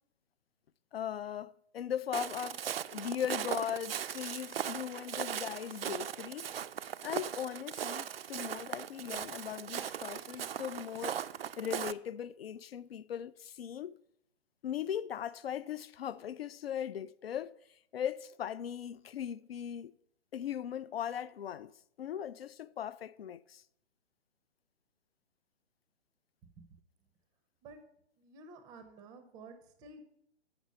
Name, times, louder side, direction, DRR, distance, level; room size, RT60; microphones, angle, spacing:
voice 1, 0.9-2.6 2.9-6.5 7.0-11.2 11.6-14.0 14.6-17.5 17.9-19.9 20.3-21.7 22.0-23.6, left 9 dB, 60° left, 0.5 m, -39 dB
Walk footsteps, 2.1-11.9, right 9 dB, 60° right, 0.5 m, -39 dB
voice 2, 28.2-30.0, right 3 dB, 10° right, 0.6 m, -52 dB
7.0 x 6.0 x 6.5 m
figure-of-eight pair, 125°, 34 cm